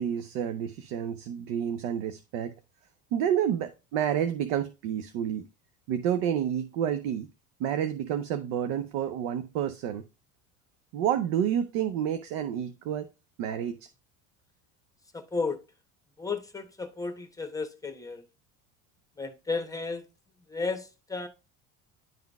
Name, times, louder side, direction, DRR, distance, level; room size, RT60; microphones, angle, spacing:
voice 1, 0.0-2.5 3.1-5.5 5.9-7.3 7.6-10.0 10.9-13.1 13.4-13.9, right 9 dB, 80° right, 0.7 m, -29 dB
voice 2, 15.1-15.6 16.2-18.2 19.2-20.0 20.5-21.3, left 4 dB, 10° left, 1.0 m, -33 dB
10.5 x 3.7 x 2.4 m
supercardioid pair, 100°, 38 cm